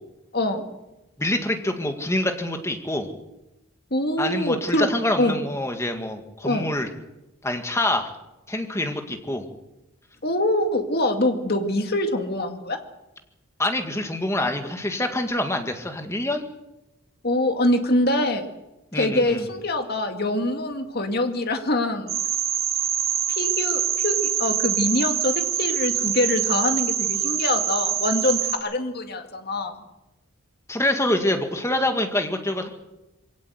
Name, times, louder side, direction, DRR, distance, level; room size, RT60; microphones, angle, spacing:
voice 1, 0.3-0.7 3.9-4.9 5.2-5.4 6.4-6.6 10.2-12.8 17.2-18.5 18.9-22.2 23.3-29.8, left 1 dB, 45° left, 5 dB, 2.2 m, -24 dB
voice 2, 1.2-3.1 4.2-6.9 7.4-8.1 8.5-9.5 13.6-16.4 18.9-19.5 30.7-32.7, left 1 dB, 10° left, 5 dB, 1.9 m, -26 dB
sound 1, 22.1-28.6, right 9 dB, 45° right, 2.7 m, -25 dB
22.5 x 17.5 x 8.1 m, 0.95 s
head